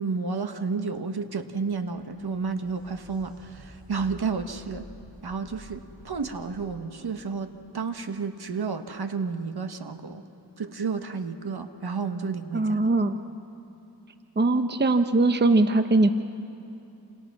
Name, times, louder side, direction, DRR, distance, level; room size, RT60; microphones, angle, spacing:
voice 1, 0.0-4.8 5.2-10.2 10.6-12.8, right 5 dB, 65° right, 7 dB, 1.5 m, -31 dB
sound 1, 1.3-8.8 12.2-12.3 13.4-13.5, left 1 dB, ahead, 7.4 m, -50 dB
voice 2, 12.5-13.2 14.4-16.1, right 2 dB, 25° right, 8 dB, 0.9 m, -21 dB
28.0 x 28.0 x 6.1 m, 2.9 s
wide cardioid pair, 75°, 42 cm